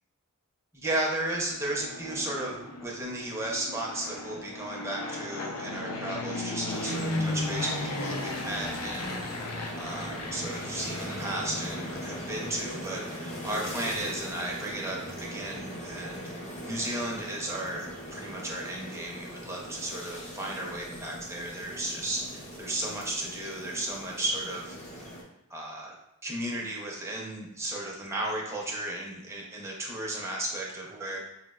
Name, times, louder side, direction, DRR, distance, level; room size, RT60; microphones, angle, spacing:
voice 1, 0.7-9.3 9.8-16.3 16.6-24.8 25.5-25.9 26.2-31.2, right 1 dB, 10° right, -2 dB, 0.5 m, -34 dB
Fixed-wing aircraft airplane, 1.5-12.6, left 2 dB, 85° left, 0.5 m, -36 dB
sound 1, 6.7-25.2, equal, 30° left, 0.6 m, -40 dB
4.1 x 2.0 x 2.2 m, 0.85 s
head